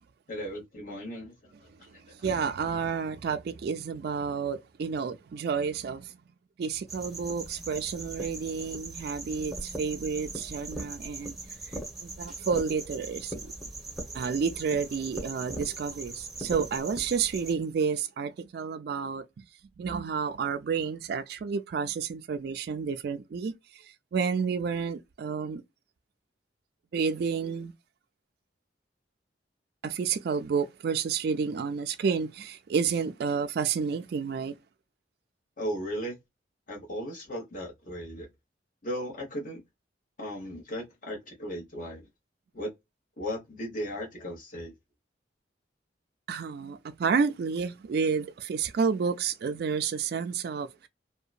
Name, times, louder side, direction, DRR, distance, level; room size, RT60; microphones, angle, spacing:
voice 1, 0.3-1.3 35.6-36.2 36.7-38.3 38.8-39.6 40.2-42.0 42.5-42.7 43.2-44.7, equal, 45° left, 1.2 m, -36 dB
voice 2, 2.2-6.1 6.6-11.4 12.0-13.3 14.1-19.2 19.8-23.5 24.1-25.6 26.9-27.7 29.8-34.5 46.3-50.9, right 6 dB, 60° right, 0.3 m, -30 dB
sound 1, 6.9-17.5, right 2 dB, ahead, 0.8 m, -40 dB
2.8 x 2.2 x 2.4 m
head